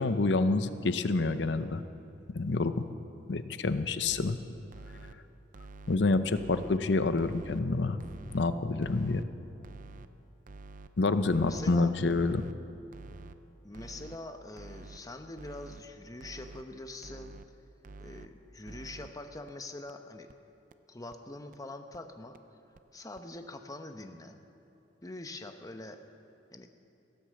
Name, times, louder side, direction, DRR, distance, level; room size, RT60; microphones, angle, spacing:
voice 1, 0.0-1.8 2.3-2.8 3.3-4.4 5.9-8.0 8.3-9.2 11.0-12.4, left 3 dB, 70° left, 11 dB, 0.7 m, -27 dB
sound 1, 3.9-4.3 4.7-5.1 5.5-6.0 6.4-6.8 7.2-7.6 8.0-8.4 8.8-9.2 9.6-10.1 10.5-10.9 11.3-11.7 12.1-12.5 12.9-13.3 13.7-14.2 14.6-15.0 15.4-15.8 16.2-16.6 17.0-17.5 17.8-18.3 18.7-19.1 19.5-19.6 19.9-20.0 20.3-20.4 20.7-20.8 21.1-21.2 21.5-21.6 21.9-22.0 22.3-22.4 22.8-22.9 23.2-23.3, right 3 dB, 45° right, 0.5 m, -48 dB
voice 2, 11.5-11.9 13.6-17.4 18.0-20.3 20.9-22.4 22.9-24.4 25.0-26.0 26.5-26.7, left 2 dB, 20° left, 6 dB, 0.9 m, -44 dB
16.5 x 10.0 x 7.7 m, 2.9 s
head